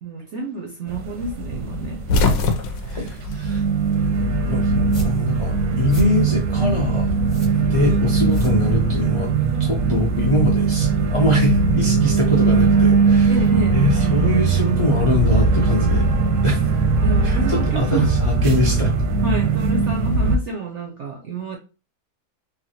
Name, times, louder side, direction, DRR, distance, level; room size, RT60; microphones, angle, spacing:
voice 1, 0.0-2.1 13.3-13.8 17.0-18.1 19.2-21.6, right 2 dB, 70° right, 0.7 m, -29 dB
sound 1, 0.9-20.4, right 4 dB, 85° right, 1.2 m, -20 dB
sound 2, 1.8-4.3 4.6-5.7 6.9-8.3, left 3 dB, 70° left, 0.9 m, -24 dB
voice 2, 2.9-3.6 4.5-7.1 7.7-9.3 9.6-13.4 13.7-16.1 16.4-16.8 17.2-18.9, left 1 dB, 50° left, 0.3 m, -23 dB
sound 3, 4.7-9.2, right 1 dB, 20° left, 0.8 m, -33 dB
3.3 x 2.2 x 2.8 m
omnidirectional pair, 1.7 m